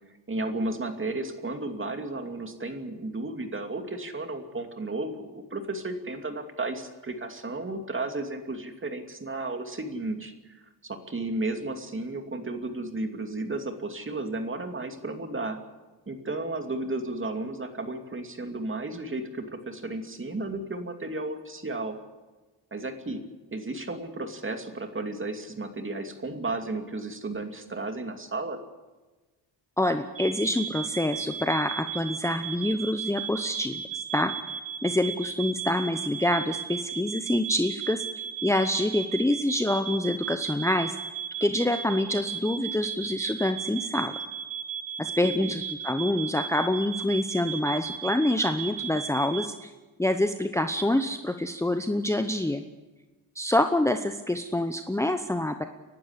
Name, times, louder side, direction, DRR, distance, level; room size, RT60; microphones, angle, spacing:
voice 1, 0.3-15.6 16.1-22.0 22.7-23.2 23.5-28.6 45.0-45.6, right 2 dB, 30° right, 6 dB, 2.6 m, -33 dB
voice 2, 29.8-34.3 34.8-41.0 41.4-44.1 45.0-49.7 50.0-52.6 53.4-55.6, left 1 dB, 5° left, 7 dB, 0.9 m, -26 dB
sound 1, 30.1-49.5, right 8 dB, 50° right, 2.0 m, -36 dB
30.0 x 12.0 x 8.2 m, 1.2 s
cardioid pair, 100°, 43 cm